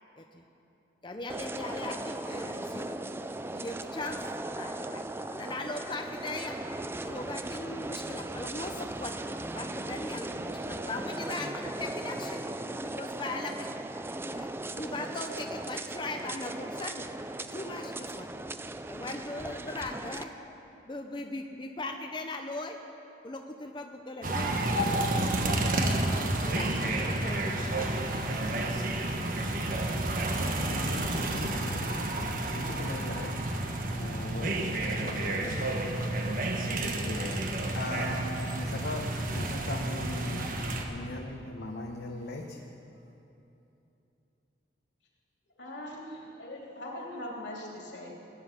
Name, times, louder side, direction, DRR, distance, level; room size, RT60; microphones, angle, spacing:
voice 1, 1.0-3.1 3.5-6.6 7.0-9.2 9.5-12.4 12.8-13.8 14.3-17.1 17.4-18.3 18.9-20.3 20.9-22.8 23.2-24.5 24.9-25.2 25.8-28.3 29.0-29.2, left 2 dB, 25° left, 3 dB, 0.7 m, -39 dB
sound 1, 1.3-20.2, right 2 dB, 15° right, 0.4 m, -38 dB
sound 2, 24.2-40.8, right 1 dB, 50° right, 1.2 m, -30 dB
voice 2, 30.4-31.9 32.2-33.6 33.9-40.5 40.9-42.6, left 2 dB, 65° left, 0 dB, 1.0 m, -40 dB
voice 3, 45.6-48.1, left 1 dB, 80° left, -2 dB, 3.0 m, -41 dB
19.0 x 10.0 x 5.9 m, 2.9 s
head